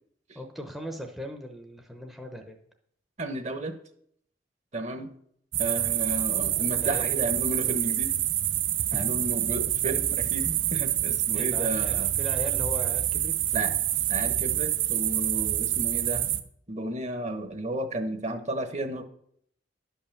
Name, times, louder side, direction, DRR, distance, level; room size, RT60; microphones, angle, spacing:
voice 1, 0.3-2.6 6.7-7.1 8.9-9.2 11.3-13.3, equal, ahead, 2 dB, 0.8 m, -38 dB
voice 2, 3.2-3.8 4.7-5.1 5.6-8.1 8.9-12.1 13.5-13.7 14.1-16.2 16.7-19.0, right 1 dB, 35° right, 8 dB, 1.0 m, -33 dB
sound 1, 5.5-16.4, right 12 dB, 70° right, 0.7 m, -27 dB
11.5 x 5.7 x 7.2 m, 0.69 s
head